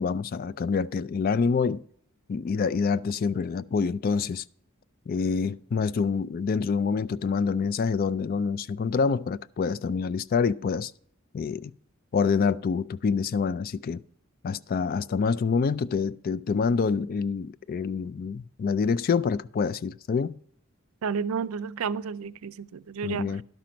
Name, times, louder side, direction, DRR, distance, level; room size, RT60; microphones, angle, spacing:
voice 1, 0.0-1.8 2.3-4.4 5.1-10.9 11.3-11.7 12.1-14.0 14.4-20.4 23.0-23.4, left 5 dB, 45° left, 0.3 m, -26 dB
voice 2, 21.0-23.4, right 6 dB, 85° right, 0.4 m, -31 dB
11.5 x 5.9 x 5.1 m
head